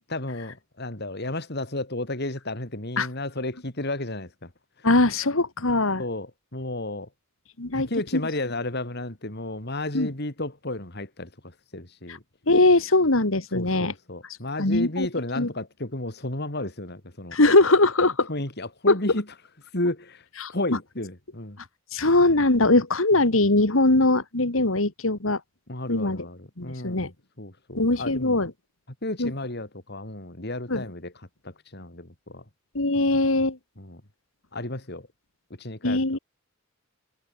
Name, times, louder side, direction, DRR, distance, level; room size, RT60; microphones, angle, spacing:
voice 1, 0.1-4.5 4.8-4.9 6.0-7.1 7.7-12.2 13.5-17.4 18.3-19.2 19.7-21.6 25.7-27.1 27.4-28.4 29.0-31.1 31.4-32.4 33.8-34.0 34.5-35.1 35.6-36.2, left 2 dB, 50° left, 3.2 m, -33 dB
voice 2, 4.8-6.0 7.6-8.2 9.9-10.1 12.1-12.2 12.5-13.9 14.6-15.1 15.4-15.5 17.3-18.3 18.9-19.0 20.4-20.5 21.9-25.4 25.9-26.2 26.6-27.1 27.8-28.5 29.2-29.3 30.7-30.9 32.7-33.6 35.8-36.2, left 2 dB, 70° left, 2.3 m, -21 dB
head